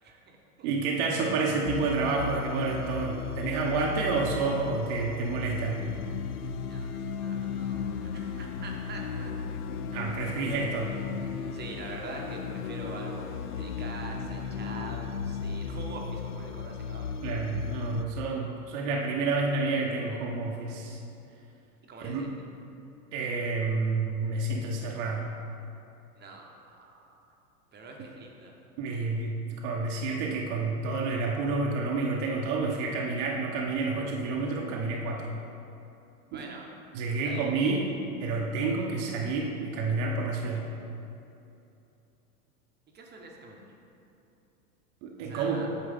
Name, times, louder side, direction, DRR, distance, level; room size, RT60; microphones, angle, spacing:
voice 1, 0.0-0.7 6.6-9.3 11.5-17.1 21.8-22.3 26.1-27.2 27.7-28.5 36.3-36.7 37.2-37.5 42.9-43.7 45.2-45.7, right 3 dB, 20° right, 0 dB, 1.1 m, -44 dB
voice 2, 0.6-5.8 9.9-10.9 17.2-21.0 22.0-22.3 23.1-25.3 28.8-35.3 36.3-36.5 36.9-37.9 38.2-40.6 45.0-45.7, right 3 dB, 50° right, -1 dB, 1.0 m, -29 dB
sound 1, 1.7-18.0, left 5 dB, 75° left, 0.6 m, -35 dB
9.0 x 6.2 x 3.6 m, 2.8 s
hypercardioid pair, 105°, 46 cm